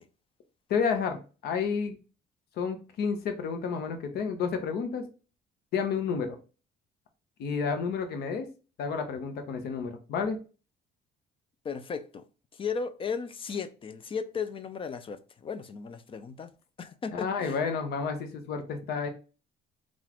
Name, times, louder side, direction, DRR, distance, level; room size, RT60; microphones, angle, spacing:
voice 1, 0.7-2.0 2.6-5.0 5.7-6.4 7.4-8.5 8.8-10.4 17.1-19.1, left 5 dB, 70° left, 0.8 m, -30 dB
voice 2, 11.6-12.2 12.6-16.5 16.8-17.6, left 6 dB, 30° left, 0.4 m, -35 dB
3.9 x 2.5 x 2.9 m
cardioid pair, 110°, 17 cm